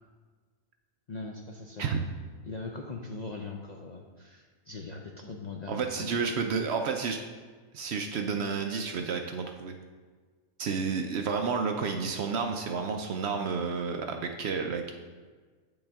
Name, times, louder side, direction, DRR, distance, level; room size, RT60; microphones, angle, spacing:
voice 1, 1.1-1.8 2.4-6.2, left 3 dB, 60° left, 1 dB, 0.4 m, -40 dB
voice 2, 5.7-7.2 7.7-9.7 10.6-14.9, right 5 dB, 65° right, 5 dB, 0.7 m, -31 dB
8.6 x 5.3 x 3.5 m, 1.5 s
omnidirectional pair, 1.4 m